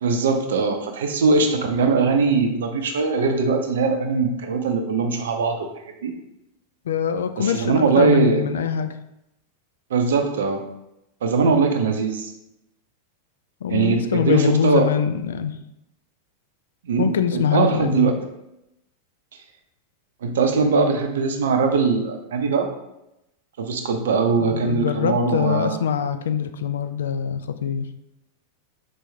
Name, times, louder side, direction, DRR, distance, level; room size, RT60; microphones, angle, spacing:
voice 1, 0.0-5.7 6.0-6.1 7.4-8.4 9.9-10.6 11.2-12.3 13.7-14.8 16.8-18.1 20.2-22.7 23.6-25.8, right 4 dB, 60° right, 5 dB, 0.5 m, -21 dB
voice 2, 6.9-8.9 13.6-15.6 17.0-18.1 24.4-27.9, left 8 dB, 65° left, 9 dB, 0.3 m, -23 dB
4.4 x 3.0 x 3.2 m, 0.87 s
figure-of-eight pair, 90°, 0 cm